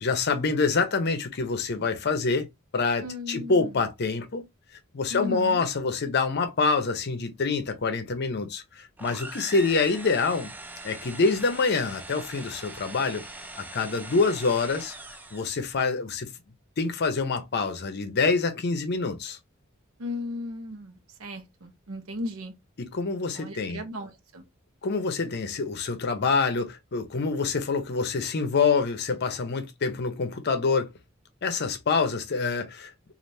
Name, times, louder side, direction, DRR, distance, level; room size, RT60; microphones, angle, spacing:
voice 1, 0.0-2.5 2.7-4.4 4.9-10.5 10.8-13.2 13.7-14.9 15.3-16.3 16.8-19.4 22.8-23.8 24.8-30.9 31.4-32.9, left 4 dB, 50° left, 0.6 m, -26 dB
voice 2, 3.0-3.7 5.1-5.6 20.0-22.5 23.3-24.4, left 2 dB, 85° right, 0.8 m, -36 dB
sound 1, 9.0-15.7, right 2 dB, 10° right, 0.3 m, -42 dB
3.3 x 2.5 x 2.6 m
head